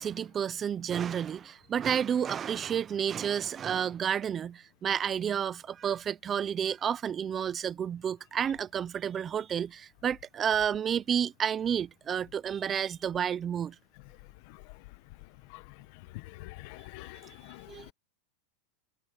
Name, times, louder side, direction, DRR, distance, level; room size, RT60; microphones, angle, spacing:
voice 1, 0.0-13.8 17.7-17.9, right 8 dB, 20° right, 0.4 m, -30 dB
voice 2, 16.1-17.9, left 20 dB, 45° left, 0.9 m, -45 dB
supercardioid pair, 170°, 0 cm